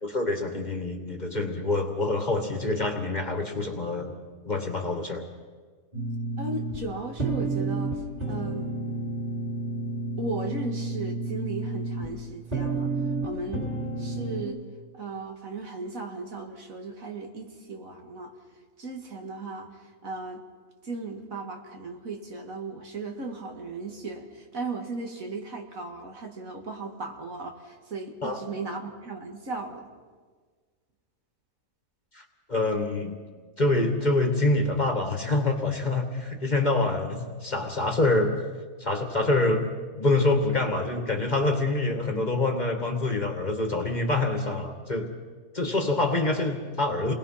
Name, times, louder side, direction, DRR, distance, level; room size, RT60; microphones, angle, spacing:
voice 1, 0.0-4.2 4.4-5.2 28.2-28.4 32.1-33.2 33.6-38.3 38.8-45.1 45.5-47.1, left 2 dB, 30° left, 4 dB, 2.0 m, -26 dB
sound 1, 5.9-14.4, right 2 dB, 25° right, 3.9 m, -31 dB
voice 2, 6.4-8.0 8.3-8.7 10.2-12.9 13.2-13.7 14.0-14.6 14.9-18.3 18.8-20.4 20.8-29.9, right 3 dB, 60° right, 3 dB, 2.4 m, -36 dB
29.0 x 20.5 x 5.8 m, 1.5 s
omnidirectional pair, 1.6 m